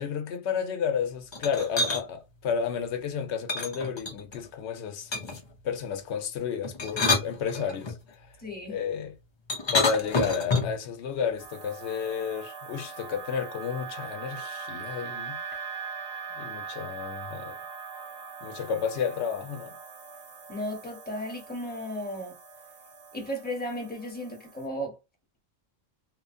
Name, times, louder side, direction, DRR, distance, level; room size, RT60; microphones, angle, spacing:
voice 1, 0.0-8.0 8.2-8.3 8.7-9.1 9.7-15.4 16.4-17.6 18.4-19.8, left 7 dB, 85° left, 0.9 m, -32 dB
sound 1, 1.3-2.0 3.5-4.4 5.1-5.5 6.6-8.0 9.5-10.8, left 3 dB, 35° left, 0.4 m, -28 dB
voice 2, 8.4-8.8 20.5-22.4 23.1-25.0, equal, 10° left, 1.0 m, -35 dB
sound 2, 11.4-24.7, right 5 dB, 70° right, 1.0 m, -41 dB
3.0 x 2.0 x 2.5 m
omnidirectional pair, 1.1 m